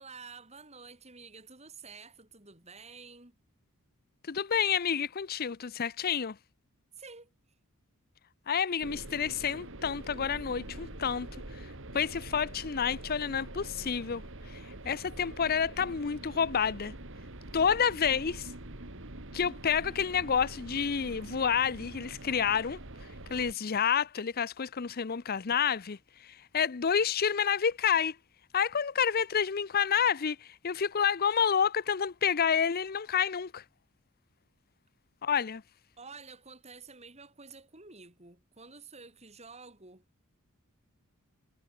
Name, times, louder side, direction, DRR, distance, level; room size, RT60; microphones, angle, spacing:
voice 1, 0.0-3.4 7.0-7.3 36.0-40.0, right 4 dB, 30° right, 6.0 m, -50 dB
voice 2, 4.3-6.4 8.5-11.7 11.9-16.9 17.5-18.5 19.3-22.8 23.3-28.2 28.5-33.6 35.2-35.6, left 7 dB, 45° left, 0.6 m, -29 dB
sound 1, 8.8-23.5, right 1 dB, 60° right, 2.6 m, -45 dB
head